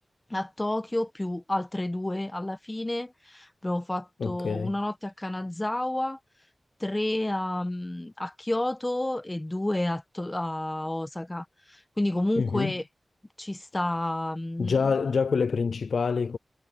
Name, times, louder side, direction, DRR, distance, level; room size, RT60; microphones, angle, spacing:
voice 1, 0.3-6.2 6.8-12.8 13.4-14.9, left 1 dB, 15° left, 1.2 m, -30 dB
voice 2, 4.2-4.7 12.4-12.7 14.6-16.4, left 5 dB, 85° left, 0.4 m, -26 dB
wide cardioid pair, 105°, 0 cm